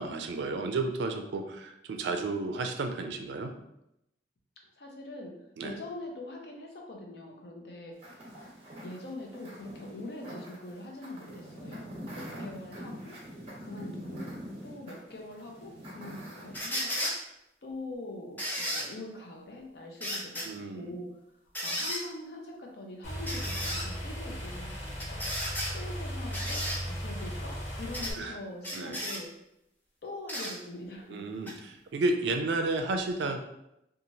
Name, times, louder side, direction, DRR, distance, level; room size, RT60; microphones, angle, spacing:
voice 1, 0.0-3.5 5.6-5.7 20.4-21.0 28.2-28.4 28.7-29.0 31.1-33.4, right 3 dB, 80° right, 6 dB, 0.4 m, -32 dB
voice 2, 4.8-8.0 8.8-13.2 13.6-14.2 14.6-17.1 17.6-21.1 21.6-25.2 25.7-29.3 30.0-31.2, left 2 dB, 65° left, 1 dB, 0.6 m, -43 dB
sound 1, 8.0-16.6, equal, 35° right, 0.7 m, -44 dB
sound 2, 16.5-17.2 18.4-18.9 20.0-20.5 21.5-22.0 23.3-23.8 25.0-25.7 26.3-26.8 27.9-28.1 28.6-29.2 30.3-30.5 31.4-31.5, equal, 10° left, 0.4 m, -33 dB
sound 3, 23.0-28.1, equal, 45° left, 1.0 m, -37 dB
3.0 x 2.3 x 2.6 m, 0.84 s
head